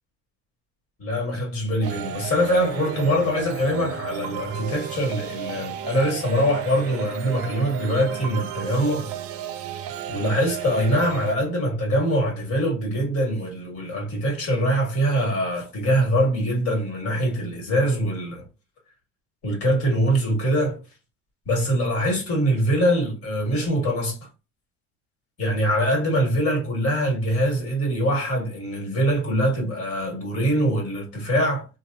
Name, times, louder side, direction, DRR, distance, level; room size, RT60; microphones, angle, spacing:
voice 1, 1.0-9.1 10.1-18.4 19.4-20.8 21.5-24.2 25.4-31.7, equal, 50° left, 1.8 m, -23 dB
sound 1, 1.8-11.4, right 9 dB, 50° right, 0.5 m, -33 dB
3.3 x 2.3 x 2.5 m
cardioid pair, 130°, 31 cm